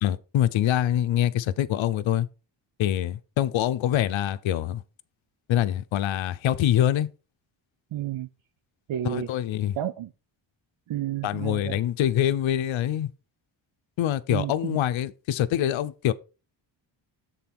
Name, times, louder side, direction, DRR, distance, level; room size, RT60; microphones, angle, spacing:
voice 1, 0.0-2.3 2.8-4.8 5.5-7.1 9.0-9.7 11.2-13.1 14.0-16.1, left 11 dB, 70° left, 0.7 m, -25 dB
voice 2, 7.9-8.3 8.9-9.3 9.8-10.1 10.9-11.8 14.3-14.8, right 12 dB, 70° right, 0.8 m, -31 dB
6.9 x 4.0 x 5.9 m
cardioid pair, 60°, 48 cm